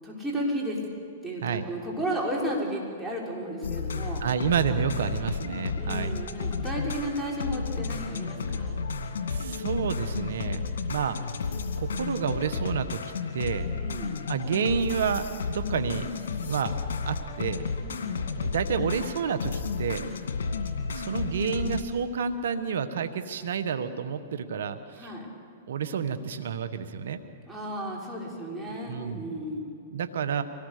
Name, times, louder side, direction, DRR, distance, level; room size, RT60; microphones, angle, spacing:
voice 1, 0.0-0.8 1.2-4.2 5.8-8.9 13.7-14.2 17.8-18.3 25.0-25.3 27.4-29.8, equal, 5° right, -4 dB, 5.7 m, -33 dB
sound 1, 3.6-21.8, left 4 dB, 75° left, 2.3 m, -32 dB
voice 2, 4.2-6.1 9.3-11.2 11.8-13.7 14.3-16.1 16.4-16.7 17.1-17.6 18.4-20.1 20.9-25.1 25.7-27.2 28.9-29.3 29.9-30.4, right 7 dB, 75° right, 10 dB, 1.4 m, -30 dB
24.5 x 18.5 x 6.8 m, 2.6 s
hypercardioid pair, 120°, 0 cm